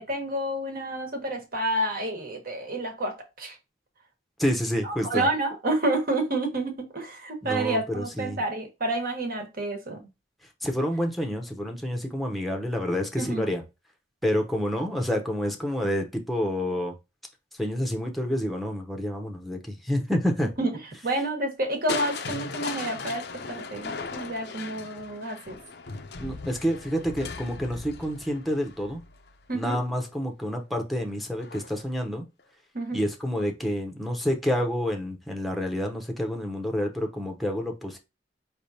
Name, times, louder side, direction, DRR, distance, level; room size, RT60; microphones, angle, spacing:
voice 1, 0.0-3.6 4.8-10.1 13.2-13.5 20.6-20.8 21.0-25.6 29.5-29.8 32.7-33.0, right 2 dB, 55° right, 1.4 m, -29 dB
voice 2, 4.4-5.3 7.4-8.4 10.6-13.6 14.2-16.9 17.6-20.5 26.2-29.0 29.5-32.2 32.9-38.0, equal, ahead, 0.8 m, -28 dB
Crushing, 21.9-29.8 31.4-31.9 32.4-32.5, left 4 dB, 65° left, 0.6 m, -37 dB
4.9 x 3.3 x 2.7 m
head